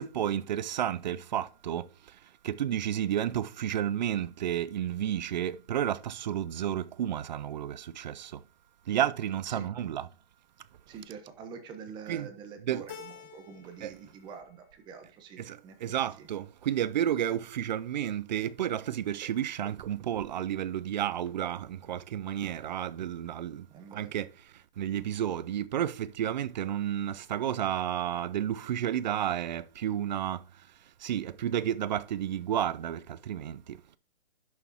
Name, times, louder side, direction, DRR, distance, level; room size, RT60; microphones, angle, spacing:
voice 1, 0.0-1.9 2.4-8.4 8.9-10.1 12.1-12.3 12.6-12.8 13.8-13.9 15.4-23.7 23.9-24.3 24.8-30.4 31.0-33.8, right 10 dB, 50° right, 0.5 m, -31 dB
voice 2, 10.9-16.3 23.7-24.1, right 6 dB, 15° right, 0.9 m, -46 dB
Keyboard (musical), 12.9-14.0 14.3-15.1, left 9 dB, 15° left, 0.5 m, -49 dB
11.0 x 6.3 x 2.9 m
hypercardioid pair, 145°, 29 cm